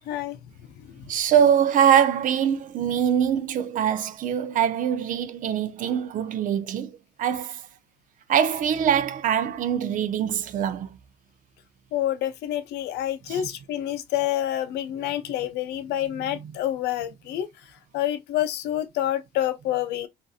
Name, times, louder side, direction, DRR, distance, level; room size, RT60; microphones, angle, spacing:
voice 1, 0.1-0.4 0.6-1.1 11.9-17.5 17.9-20.1, left 12 dB, 80° left, 0.5 m, -28 dB
voice 2, 1.1-7.7 8.3-11.0 13.3-13.5 16.1-16.6, right 9 dB, 50° right, 0.4 m, -23 dB
2.6 x 2.5 x 2.4 m
cardioid pair, 110°, 17 cm